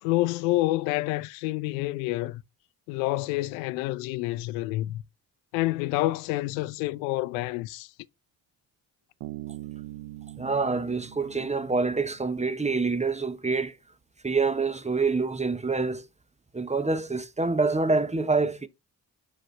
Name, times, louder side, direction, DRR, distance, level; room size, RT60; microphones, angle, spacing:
voice 1, 0.0-2.4 2.9-5.0 5.5-7.9, left 18 dB, 85° left, 0.5 m, -28 dB
Bass guitar, 9.2-12.7, right 15 dB, 80° right, 0.7 m, -42 dB
voice 2, 10.4-13.8 14.2-16.1 16.5-18.7, right 4 dB, 15° right, 0.9 m, -26 dB
6.1 x 4.8 x 3.2 m
hypercardioid pair, 50°, 48 cm